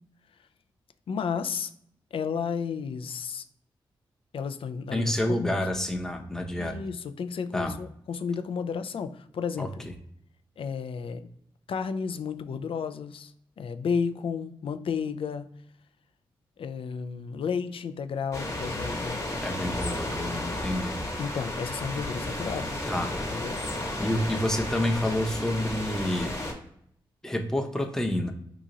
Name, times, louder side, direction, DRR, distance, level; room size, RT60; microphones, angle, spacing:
voice 1, 1.1-1.7 2.1-3.4 4.3-5.6 6.6-9.9 10.6-11.3 11.7-15.5 16.6-19.2 21.2-22.8 23.3-23.6, left 6 dB, 60° left, 9 dB, 0.4 m, -32 dB
voice 2, 4.9-6.8 7.5-7.7 9.6-9.7 19.4-21.0 22.9-23.1 24.0-26.3 27.2-28.3, left 1 dB, 5° left, 3 dB, 0.7 m, -28 dB
sound 1, 18.3-26.5, left 1 dB, 30° left, 1.2 m, -33 dB
2.9 x 2.4 x 3.8 m, 0.70 s
supercardioid pair, 50°, 10 cm